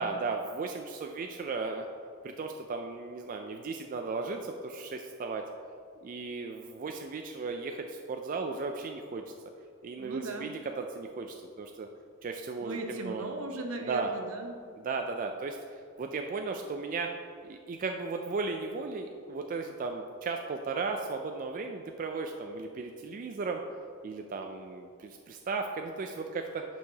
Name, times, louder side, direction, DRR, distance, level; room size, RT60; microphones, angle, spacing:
voice 1, 0.0-1.9 2.2-5.4 6.0-9.2 9.8-11.9 12.2-13.2 13.9-14.1 14.8-15.6 16.0-17.1 17.4-23.6 24.0-26.6, right 4 dB, 40° right, 4 dB, 0.3 m, -35 dB
voice 2, 10.0-10.5 12.6-14.6, right 2 dB, 75° right, 4 dB, 0.8 m, -38 dB
11.5 x 4.6 x 2.8 m, 2.3 s
head